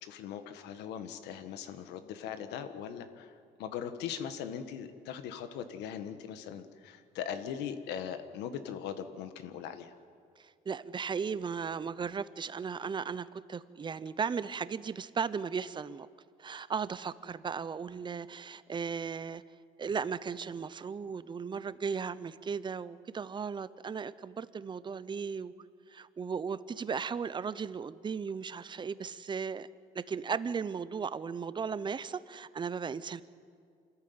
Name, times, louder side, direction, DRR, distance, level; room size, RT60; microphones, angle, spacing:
voice 1, 0.0-9.9, left 8 dB, 85° left, 9 dB, 1.6 m, -40 dB
voice 2, 10.4-16.1 16.4-19.4 19.8-25.5 25.9-29.7 29.9-33.2, right 6 dB, 25° right, 16 dB, 0.7 m, -36 dB
26.0 x 14.0 x 9.5 m, 2.3 s
cardioid pair, 110°, 17 cm